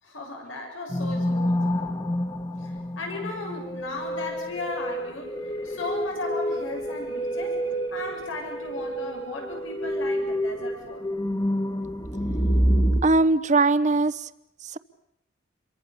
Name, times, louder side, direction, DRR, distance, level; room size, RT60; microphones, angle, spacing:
voice 1, 0.0-1.7 2.6-11.0, left 2 dB, 85° left, 2 dB, 7.1 m, -36 dB
sound 1, 0.9-13.0, equal, 20° left, 1.8 m, -28 dB
voice 2, 13.0-14.3 14.7-14.8, right 3 dB, 40° right, 14 dB, 0.9 m, -20 dB
28.5 x 23.5 x 7.0 m, 0.81 s
head